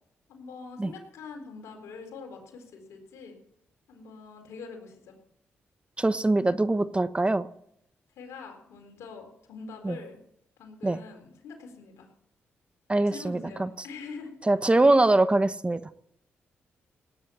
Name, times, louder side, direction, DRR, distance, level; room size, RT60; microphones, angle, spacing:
voice 1, 0.3-3.4 3.9-5.2 8.2-10.2 10.6-12.1 13.1-14.3 14.8-14.9, left 4 dB, 85° left, 4 dB, 4.2 m, -44 dB
voice 2, 6.0-7.5 9.8-10.0 10.8-11.0 12.9-13.7 14.5-15.8, right 2 dB, 20° right, 13 dB, 1.1 m, -23 dB
18.5 x 9.6 x 7.1 m, 0.74 s
supercardioid pair, 55°, 5 cm